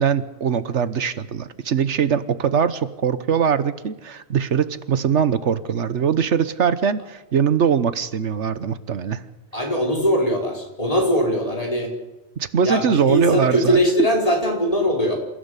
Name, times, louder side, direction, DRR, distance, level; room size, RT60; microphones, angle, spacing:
voice 1, 0.0-9.2 12.4-13.8, right 7 dB, 80° right, 13 dB, 1.4 m, -21 dB
voice 2, 9.5-11.9 12.6-15.2, equal, 30° left, 0 dB, 5.2 m, -21 dB
27.5 x 16.0 x 8.3 m, 1.0 s
omnidirectional pair, 1.2 m